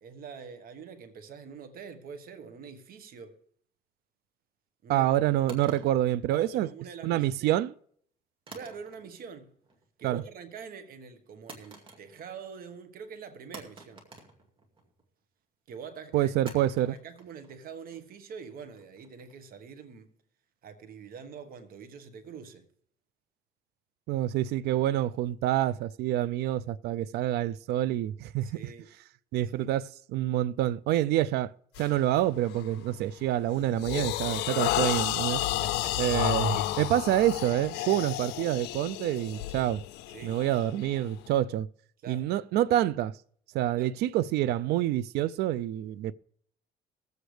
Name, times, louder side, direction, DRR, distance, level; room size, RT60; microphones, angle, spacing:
voice 1, 0.0-3.4 4.8-5.1 6.3-7.5 8.5-9.5 10.0-14.0 15.7-16.3 16.8-20.1 20.6-22.7 28.4-28.9 29.6-29.7 35.3-36.0 36.5-36.7 40.1-40.3 42.0-42.3 43.8-43.9, right 6 dB, 60° right, 1.3 m, -45 dB
voice 2, 4.9-6.7 7.0-7.7 10.0-10.2 16.1-17.0 24.1-28.5 29.3-31.5 31.8-35.4 36.0-39.8 40.2-41.7 42.1-43.1 43.5-46.1, right 13 dB, 75° right, 0.4 m, -27 dB
sound 1, 5.5-6.9 8.5-9.3 9.6-10.1 11.5-12.4 12.7-12.8 13.5-15.1 16.5-19.5, right 2 dB, 30° right, 2.3 m, -50 dB
sound 2, 31.7-32.0 32.5-32.8 33.2-41.3, left 15 dB, 85° left, 0.5 m, -31 dB
21.5 x 8.0 x 3.3 m
cardioid pair, 110°, 17 cm